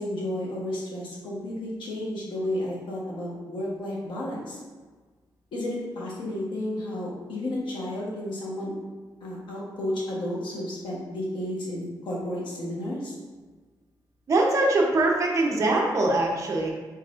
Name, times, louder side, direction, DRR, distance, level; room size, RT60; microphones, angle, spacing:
voice 1, 0.0-4.6 5.5-8.7 9.2-13.1, left 1 dB, 85° left, -4 dB, 1.1 m, -32 dB
voice 2, 14.3-16.7, right 2 dB, 40° right, -1 dB, 0.7 m, -22 dB
4.1 x 4.1 x 2.5 m, 1.4 s
wide cardioid pair, 135°, 8 cm